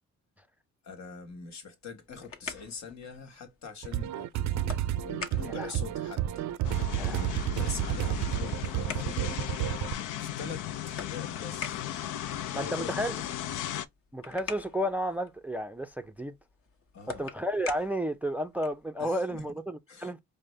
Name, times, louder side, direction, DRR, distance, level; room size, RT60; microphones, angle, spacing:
voice 1, 0.8-6.5 7.0-9.5 10.2-13.4 16.9-17.3 19.0-19.4 19.9-20.1, left 5 dB, 65° left, 1.5 m, -44 dB
sound 1, 1.8-18.9, left 5 dB, 45° left, 1.2 m, -47 dB
sound 2, 3.8-9.9, right 12 dB, 65° right, 0.4 m, -31 dB
sound 3, 6.6-13.8, left 12 dB, 85° left, 0.5 m, -36 dB
voice 2, 12.5-13.2 14.1-16.3 17.1-20.2, equal, 5° right, 0.4 m, -32 dB
5.0 x 2.1 x 3.2 m
cardioid pair, 90°, 30 cm